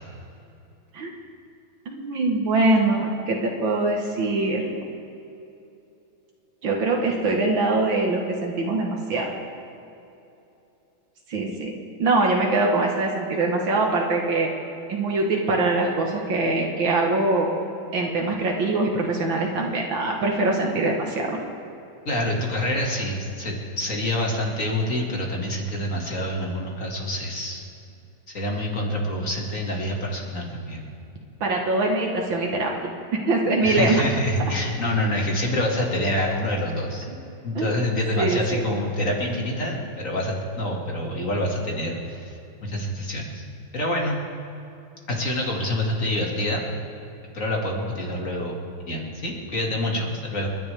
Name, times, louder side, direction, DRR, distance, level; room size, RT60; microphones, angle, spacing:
voice 1, 1.9-4.6 6.6-9.3 11.3-11.7 12.0-14.5 14.9-17.5 17.9-21.4 31.4-32.7 33.1-34.0 37.6-37.7 38.2-38.6, right 2 dB, 75° right, 0 dB, 2.2 m, -23 dB
voice 2, 22.1-27.7 28.3-30.8 33.6-37.1 37.4-43.4 43.7-44.2 45.1-46.6 47.3-48.6 48.9-50.5, left 1 dB, 40° left, -1 dB, 2.5 m, -26 dB
29.5 x 10.5 x 3.5 m, 2.8 s
omnidirectional pair, 2.2 m